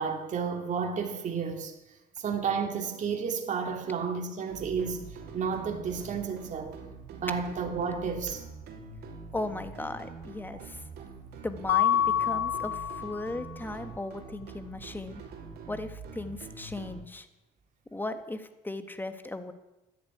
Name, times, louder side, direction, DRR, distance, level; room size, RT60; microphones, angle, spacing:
voice 1, 0.0-1.7 2.2-5.0 5.3-6.8 7.1-8.4 10.5-10.6 12.3-12.4, right 6 dB, 45° right, 2.5 m, -32 dB
sound 1, 4.5-17.0, right 4 dB, 70° right, 2.8 m, -45 dB
voice 2, 9.3-10.8 11.4-15.2 15.7-17.3 17.9-19.5, left 2 dB, 10° left, 1.6 m, -37 dB
Mallet percussion, 11.7-13.5, left 10 dB, 65° left, 1.0 m, -27 dB
13.5 x 10.5 x 9.8 m
cardioid pair, 110°, 17 cm